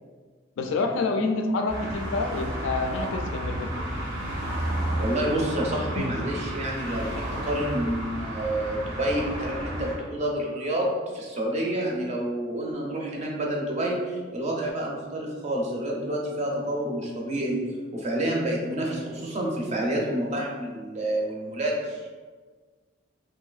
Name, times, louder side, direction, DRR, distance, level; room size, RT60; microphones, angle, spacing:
voice 1, 0.6-3.9 6.0-6.1, left 3 dB, 70° left, 4 dB, 0.3 m, -28 dB
sound 1, 1.7-10.0, right 1 dB, 90° right, 0.9 m, -32 dB
voice 2, 5.0-17.6 17.9-22.2, right 1 dB, 35° right, -2 dB, 0.5 m, -29 dB
3.0 x 2.7 x 2.3 m, 1.5 s
head